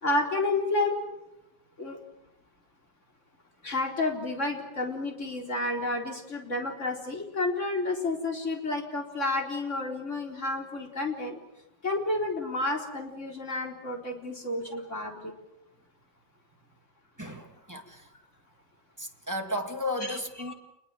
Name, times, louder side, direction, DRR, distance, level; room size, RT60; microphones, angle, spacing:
voice 1, 0.0-0.9 1.8-2.0 3.6-11.3 11.8-15.3 20.1-20.2 20.5-20.6, left 2 dB, 30° left, 2 dB, 4.4 m, -30 dB
voice 2, 17.2-18.1 19.0-20.5, left 1 dB, 10° right, 3 dB, 2.0 m, -34 dB
29.0 x 21.5 x 7.7 m, 0.87 s
omnidirectional pair, 2.4 m